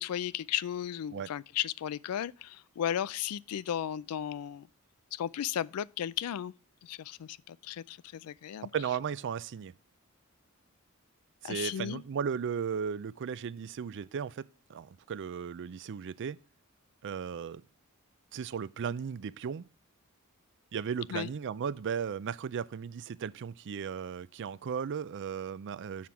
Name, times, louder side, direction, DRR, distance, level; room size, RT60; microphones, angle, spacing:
voice 1, 0.0-4.7 5.1-6.5 6.8-8.7 11.4-12.0 21.1-21.3, left 10 dB, 80° left, 0.3 m, -35 dB
voice 2, 8.7-9.7 11.4-14.4 14.7-16.4 17.0-17.6 18.3-19.6 20.7-26.1, right 7 dB, 55° right, 0.4 m, -36 dB
7.2 x 5.9 x 4.8 m
head